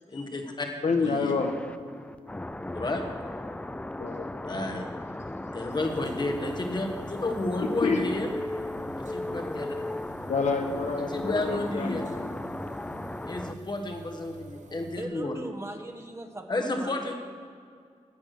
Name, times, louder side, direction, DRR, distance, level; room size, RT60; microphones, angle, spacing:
voice 1, 0.1-0.7 1.0-1.4 2.7-3.0 4.5-4.8 5.5-8.3 9.1-9.7 11.1-12.1 13.3-15.4 16.5-17.1, left 2 dB, 35° left, 4 dB, 1.4 m, -31 dB
voice 2, 0.8-1.6 4.0-4.5 7.6-8.0 10.3-12.4, left 4 dB, 65° left, 4 dB, 1.2 m, -28 dB
sound 1, 1.4-13.5, left 1 dB, 10° left, 0.3 m, -37 dB
sound 2, 5.7-15.1, right 4 dB, 75° right, 0.9 m, -48 dB
voice 3, 15.0-17.1, right 1 dB, 20° right, 3 dB, 1.2 m, -39 dB
11.0 x 8.5 x 6.5 m, 2.2 s
wide cardioid pair, 110°, 13 cm